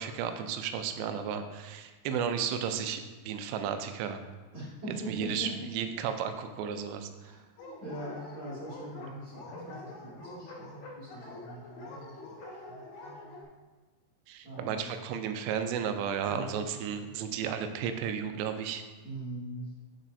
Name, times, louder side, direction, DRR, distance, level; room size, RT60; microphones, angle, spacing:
voice 1, 0.0-4.2 5.1-7.1 14.3-18.8, right 7 dB, 85° right, 8 dB, 2.8 m, -33 dB
voice 2, 4.5-5.7 7.2-7.4 7.8-12.2 12.5-13.3 14.4-14.8 16.3-16.6 19.0-19.7, right 1 dB, 45° right, -10 dB, 2.8 m, -42 dB
Dog, 7.6-13.5, left 2 dB, 70° left, 2.9 m, -46 dB
7.2 x 6.5 x 2.7 m, 1.3 s
omnidirectional pair, 5.1 m